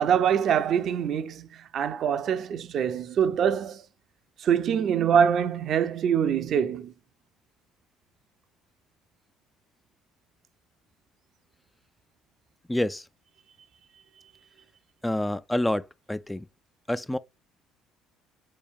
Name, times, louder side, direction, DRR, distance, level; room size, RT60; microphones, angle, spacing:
voice 1, 0.0-3.8 4.4-6.9, right 8 dB, 50° right, 0.5 m, -24 dB
voice 2, 12.7-13.1 15.0-16.5 16.9-17.2, left 1 dB, 10° left, 0.3 m, -28 dB
4.3 x 3.3 x 3.5 m
figure-of-eight pair, 55°, 0 cm